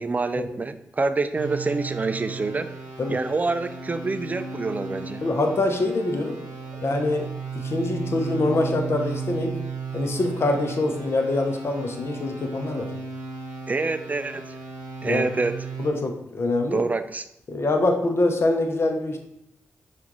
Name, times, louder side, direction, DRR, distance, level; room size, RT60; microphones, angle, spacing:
voice 1, 0.0-2.7 3.1-5.2 6.7-6.8 13.7-14.4 15.0-15.6 16.7-17.3, right 3 dB, 30° right, 11 dB, 0.4 m, -26 dB
sound 1, 1.3-15.9, right 5 dB, 90° right, 0.6 m, -35 dB
voice 2, 5.2-6.4 6.8-7.3 7.5-9.5 9.9-12.9 15.0-15.2 15.8-16.8 17.5-19.2, left 2 dB, 50° left, 4 dB, 0.8 m, -24 dB
5.7 x 2.5 x 3.0 m, 0.79 s
supercardioid pair, 40°, 5 cm